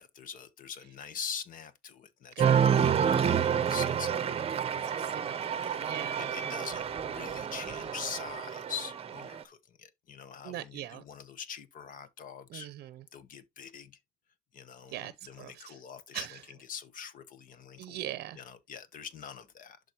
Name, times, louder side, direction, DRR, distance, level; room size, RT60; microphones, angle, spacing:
voice 1, 0.0-5.1 5.5-12.7 13.1-13.9 14.5-18.0 18.3-19.8, left 7 dB, 55° left, 1.0 m, -44 dB
Cheering, 2.4-9.4, right 8 dB, 35° right, 0.7 m, -29 dB
voice 2, 2.4-2.7 4.8-6.3 10.4-11.0 12.5-13.0 14.9-15.1 15.4-15.8 16.1-16.4 17.8-18.4, right 13 dB, 70° right, 0.6 m, -41 dB
11.5 x 3.9 x 2.9 m
cardioid pair, 110°, 17 cm